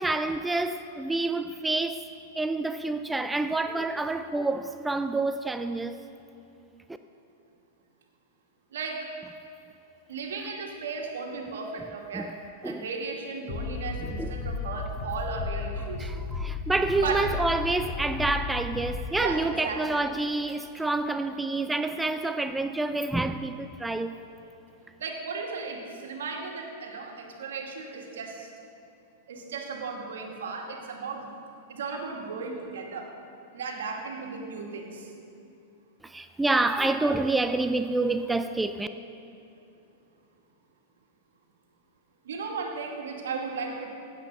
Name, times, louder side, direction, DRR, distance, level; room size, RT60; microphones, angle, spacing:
voice 1, 0.0-2.0 2.4-6.0 12.1-12.3 12.6-12.9 14.2-14.3 16.0-24.2 36.0-38.9, right 2 dB, 10° right, 0.5 m, -28 dB
voice 2, 8.7-9.1 10.1-12.4 12.6-16.1 17.0-17.2 19.2-20.0 25.0-28.5 29.3-31.3 31.7-33.1 33.5-35.1 42.2-43.9, right 4 dB, 80° right, 2.1 m, -35 dB
Bass drum, 13.5-19.1, left 4 dB, 30° left, 2.4 m, -34 dB
16.5 x 8.3 x 5.4 m
hypercardioid pair, 115°, 0 cm